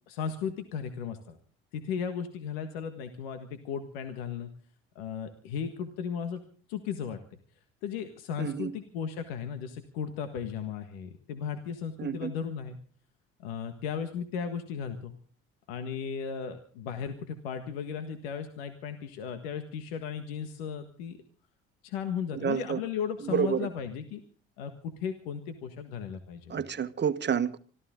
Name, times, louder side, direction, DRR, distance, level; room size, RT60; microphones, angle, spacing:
voice 1, 0.1-1.4 1.7-4.5 4.9-6.4 6.7-7.2 7.8-12.8 13.4-15.1 15.7-21.2 21.8-24.2 24.6-26.6, left 7 dB, 90° left, 1.6 m, -36 dB
voice 2, 8.4-8.7 12.0-12.3 22.3-22.8 23.2-23.7 26.5-27.6, right 7 dB, 35° right, 1.3 m, -29 dB
25.5 x 14.5 x 3.7 m
supercardioid pair, 70°, 29 cm